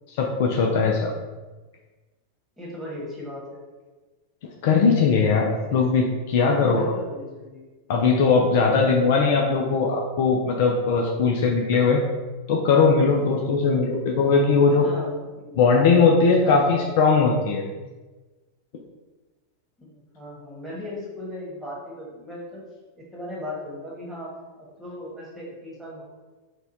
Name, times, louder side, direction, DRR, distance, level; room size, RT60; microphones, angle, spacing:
voice 1, 0.2-1.1 4.6-6.9 7.9-12.0 12.5-14.9 15.6-17.6, left 4 dB, 50° left, 0 dB, 0.5 m, -19 dB
voice 2, 2.6-3.6 5.7-6.2 6.5-7.6 8.6-9.0 13.7-13.9 14.7-16.1 16.4-16.9 19.8-22.6 23.0-24.3 24.6-26.0, left 1 dB, ahead, -6 dB, 1.5 m, -37 dB
4.1 x 2.3 x 4.0 m, 1.2 s
figure-of-eight pair, 90°, 0 cm